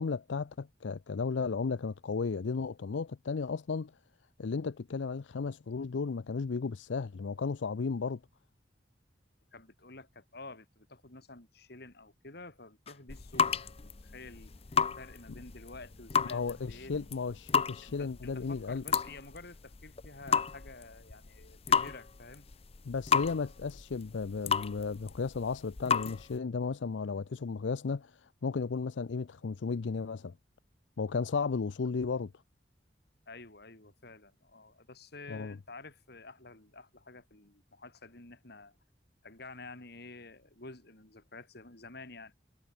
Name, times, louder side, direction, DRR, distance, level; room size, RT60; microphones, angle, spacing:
voice 1, 0.0-3.9 4.4-8.2 16.3-18.8 22.9-30.3 31.0-32.3 35.3-35.6, left 4 dB, 85° left, 0.5 m, -34 dB
voice 2, 9.5-14.5 15.0-17.0 17.8-22.5 33.3-38.8 39.2-42.4, left 3 dB, 60° left, 3.8 m, -50 dB
sound 1, 12.9-26.4, left 6 dB, 35° left, 0.6 m, -33 dB
head